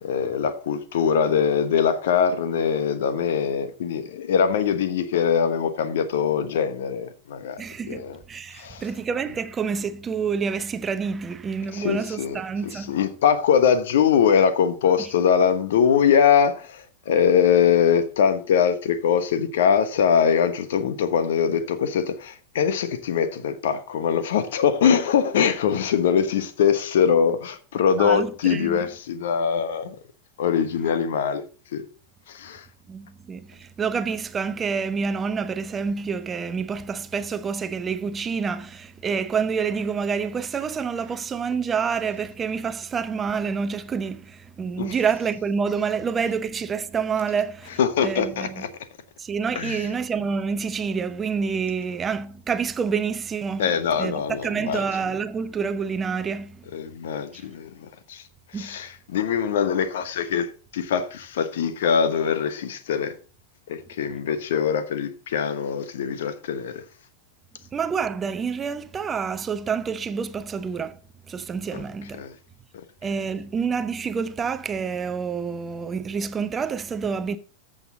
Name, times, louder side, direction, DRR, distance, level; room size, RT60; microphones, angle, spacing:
voice 1, 0.0-8.2 8.6-8.8 11.7-12.4 12.9-30.0 30.4-31.4 31.7-31.8 32.3-32.6 44.8-44.9 47.8-48.7 49.5-49.8 53.6-54.8 56.7-58.2 58.6-63.1 63.7-66.8 71.7-71.8 72.2-72.3, left 7 dB, 60° left, 1.0 m, -22 dB
voice 2, 7.6-8.0 8.3-13.0 28.0-28.8 32.9-47.7 48.0-48.6 49.2-53.7 54.0-56.6 57.3-57.5 58.5-58.7 67.7-71.0 71.3-72.2 73.0-77.4, right 6 dB, 20° right, 0.7 m, -28 dB
14.0 x 6.6 x 3.9 m
figure-of-eight pair, 90°, 0 cm